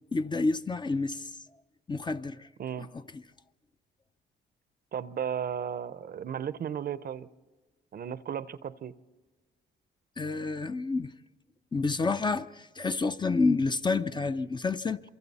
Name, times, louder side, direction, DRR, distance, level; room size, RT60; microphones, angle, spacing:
voice 1, 0.1-1.3 1.9-2.5 10.2-11.1 11.7-15.0, left 3 dB, 25° left, 0.6 m, -29 dB
voice 2, 4.9-7.3 7.9-8.9, right 8 dB, 50° right, 0.7 m, -35 dB
27.5 x 24.0 x 4.1 m
cardioid pair, 90°, 20 cm